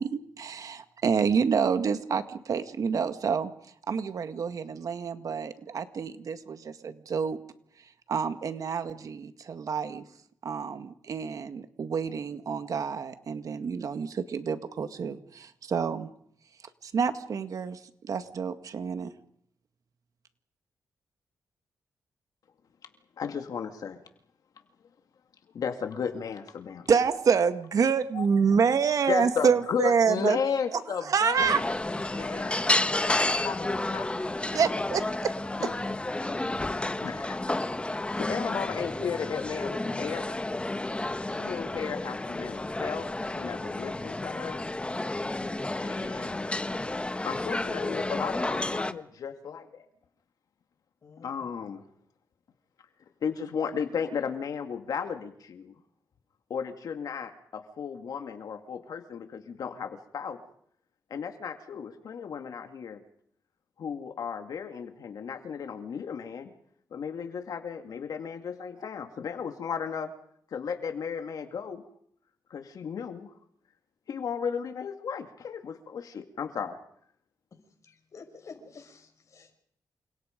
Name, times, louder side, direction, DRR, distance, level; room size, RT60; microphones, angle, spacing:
voice 1, 0.0-3.5 3.9-7.4 8.1-10.0 10.4-16.1 16.8-19.1 26.9-30.4 30.7-31.6 34.5-35.3, right 6 dB, 65° right, 2.0 m, -28 dB
voice 2, 23.2-24.0 25.5-26.9 28.1-28.2 29.1-31.6 32.1-32.6 33.1-34.1 35.6-35.7 36.4-36.5 37.0-37.4 38.2-40.3 41.3-44.6 45.8-46.7 47.2-49.9 51.2-51.8 53.2-55.7 56.5-60.4 61.1-63.0 63.8-66.5 66.9-70.1 70.5-71.8 72.5-73.3 74.1-76.8, left 6 dB, 75° left, 2.3 m, -34 dB
sound 1, 31.4-48.9, left 2 dB, 15° left, 1.3 m, -31 dB
voice 3, 77.5-79.6, left 4 dB, 55° left, 6.3 m, -50 dB
29.0 x 26.5 x 5.3 m
cardioid pair, 80°, 6 cm